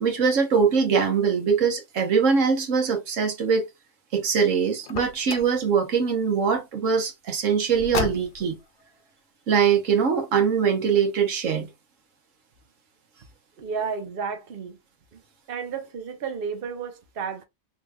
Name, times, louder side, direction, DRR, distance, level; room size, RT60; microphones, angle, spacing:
voice 1, 0.0-3.7 4.1-8.6 9.5-11.7, right 6 dB, 80° right, 1.4 m, -22 dB
Car, 4.8-5.6 7.7-8.6, left 7 dB, 55° left, 0.8 m, -32 dB
voice 2, 13.6-14.8 15.1-15.2 15.5-17.4, right 6 dB, 50° right, 1.0 m, -32 dB
4.9 x 3.3 x 2.3 m
omnidirectional pair, 1.3 m